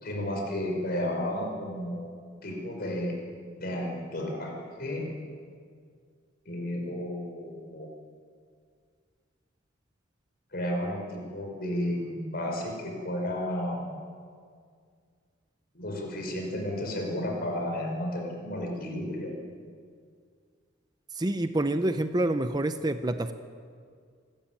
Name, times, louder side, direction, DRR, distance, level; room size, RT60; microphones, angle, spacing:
voice 1, 0.0-2.1 2.4-3.1 3.6-4.5 4.8-5.0 6.5-7.9 10.5-14.0 15.7-19.3, left 1 dB, 55° left, 1 dB, 5.2 m, -32 dB
voice 2, 21.1-23.3, right 1 dB, 20° right, 9 dB, 0.7 m, -27 dB
25.5 x 13.0 x 9.1 m, 2.1 s
head